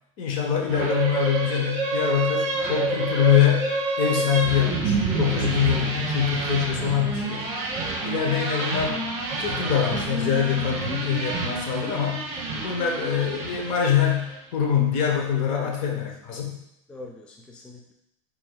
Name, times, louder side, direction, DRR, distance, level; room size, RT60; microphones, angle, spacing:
voice 1, 0.2-3.7 4.0-7.5 8.0-9.0 9.4-12.2 12.6-16.6, left 9 dB, 50° left, 1 dB, 0.9 m, -24 dB
sound 1, 0.7-14.3, right 3 dB, 35° right, 1.2 m, -28 dB
voice 2, 7.7-8.1 15.5-16.0 16.9-17.9, left 1 dB, 5° left, 0 dB, 0.3 m, -41 dB
4.5 x 3.7 x 2.3 m, 0.81 s
supercardioid pair, 130°, 17 cm